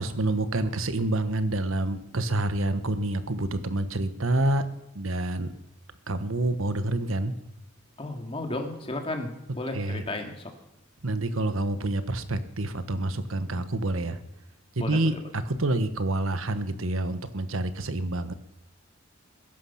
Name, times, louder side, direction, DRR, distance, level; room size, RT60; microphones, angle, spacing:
voice 1, 0.0-4.6 4.9-5.5 6.1-7.3 9.7-10.0 11.0-14.2 14.8-18.3, right 2 dB, 80° right, 11 dB, 1.2 m, -27 dB
voice 2, 8.0-10.5 14.8-15.2, left 2 dB, 25° left, 3 dB, 2.4 m, -33 dB
21.0 x 11.0 x 5.8 m, 0.87 s
head